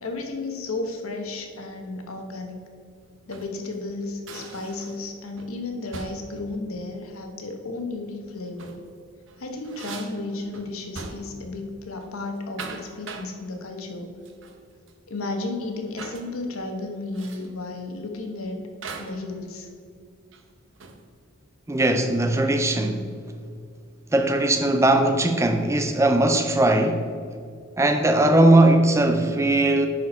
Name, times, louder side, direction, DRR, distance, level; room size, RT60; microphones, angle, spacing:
voice 1, 0.0-2.6 3.3-8.7 9.4-14.1 15.1-18.6 19.0-19.7, left 2 dB, 90° left, 1.1 m, -33 dB
sound 1, 3.1-3.6 4.3-5.1 5.4-5.6 5.9-6.4 8.4-8.9 9.3-11.5 11.8-12.0 12.4-13.4 14.3-14.6 14.9-15.0 16.0-16.3 17.1-17.5 18.8-19.3 20.3-21.1, right 4 dB, 65° right, 0.8 m, -40 dB
voice 2, 21.7-23.1 24.1-27.0 27.8-29.9, right 1 dB, 15° right, 0.4 m, -19 dB
10.5 x 4.5 x 4.3 m
head